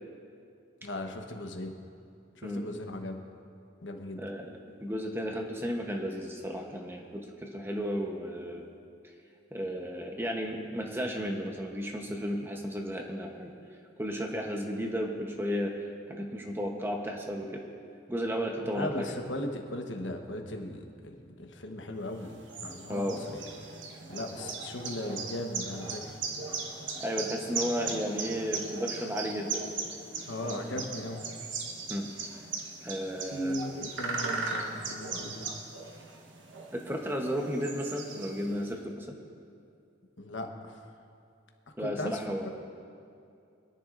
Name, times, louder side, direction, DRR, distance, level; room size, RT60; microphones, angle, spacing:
voice 1, 0.8-1.7 2.3-3.2 3.8-4.2 18.7-23.4 24.1-26.2 30.3-31.2 33.2-35.5 40.2-40.8 41.8-42.5, left 1 dB, 80° left, 3 dB, 1.2 m, -37 dB
voice 2, 4.2-8.7 9.5-13.5 14.0-17.6 18.1-19.2 22.9-23.2 27.0-29.6 30.4-30.8 31.9-32.1 32.8-33.6 36.7-39.2 41.8-42.5, equal, 15° right, 2 dB, 0.9 m, -34 dB
sound 1, 22.1-38.7, right 4 dB, 85° right, 1.2 m, -38 dB
25.0 x 10.5 x 2.6 m, 2.5 s
head